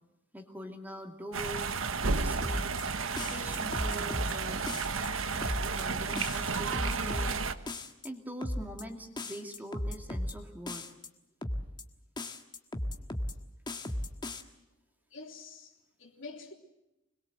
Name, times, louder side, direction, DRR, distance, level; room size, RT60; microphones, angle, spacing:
voice 1, 0.3-1.7 2.1-2.8 3.3-4.6 5.7-7.5 8.0-10.9, equal, 10° right, 2.4 m, -43 dB
sound 1, 1.3-7.5, right 4 dB, 80° right, 1.3 m, -32 dB
sound 2, 2.4-2.8 3.2-4.3 4.7-5.1 5.4-5.8 6.2-7.3 7.7-8.1 8.4-8.8 9.2-10.3 10.7-11.1 11.4-11.8 12.2-13.3 13.7-14.4, left 1 dB, 20° left, 1.6 m, -35 dB
voice 2, 15.1-16.5, left 4 dB, 70° left, 3.6 m, -47 dB
26.0 x 21.5 x 7.9 m
head